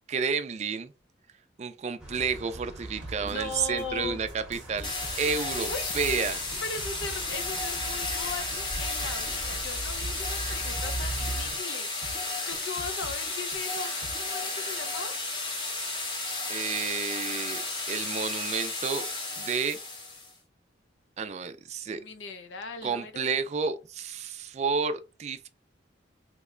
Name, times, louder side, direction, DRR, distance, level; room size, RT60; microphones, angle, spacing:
voice 1, 0.1-0.9 1.6-4.9 5.2-6.5 16.5-17.6 17.9-19.1 19.4-19.8 21.2-22.0 22.8-25.5, right 5 dB, 35° right, 0.3 m, -31 dB
sound 1, 2.0-11.5, right 1 dB, 5° right, 0.8 m, -40 dB
sound 2, 2.8-14.3, right 2 dB, 80° right, 0.7 m, -46 dB
voice 2, 3.2-4.2 5.6-5.9 6.6-13.9 14.2-15.1 21.8-23.3, left 4 dB, 85° left, 0.5 m, -39 dB
sound 3, 4.8-20.3, left 3 dB, 25° left, 0.8 m, -33 dB
2.9 x 2.1 x 3.6 m
head